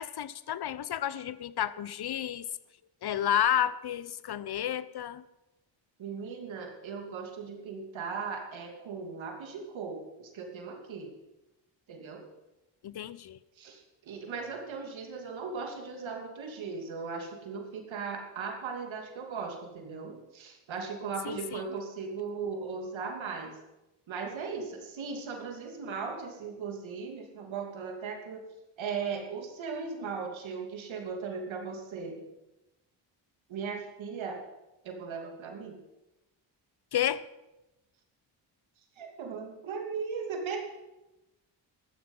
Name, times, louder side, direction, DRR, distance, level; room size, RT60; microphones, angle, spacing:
voice 1, 0.0-2.5 3.0-5.3 12.8-13.4 21.2-21.6 36.9-37.2, left 10 dB, 55° left, 0.9 m, -31 dB
voice 2, 6.0-11.1 11.9-12.2 13.6-23.5 24.1-28.4 28.8-32.2 33.5-34.4 34.8-35.8 39.0-40.6, right 5 dB, 75° right, 2.9 m, -38 dB
14.5 x 12.5 x 5.6 m
cardioid pair, 65°, 47 cm